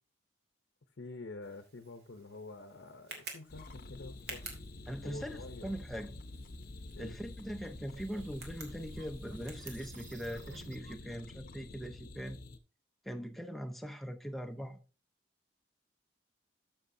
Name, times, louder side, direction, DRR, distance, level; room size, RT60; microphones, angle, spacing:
voice 1, 1.0-4.4 5.0-5.7 6.9-7.2, left 2 dB, 85° left, 0.8 m, -47 dB
Tick, 1.4-10.6, right 3 dB, 65° right, 2.3 m, -52 dB
sound 1, 3.5-12.6, left 2 dB, 50° left, 0.8 m, -48 dB
voice 2, 4.9-6.1 7.0-12.4 13.0-14.8, equal, ahead, 0.7 m, -41 dB
sound 2, 7.6-11.1, right 6 dB, 80° right, 0.5 m, -56 dB
13.0 x 6.1 x 2.7 m
head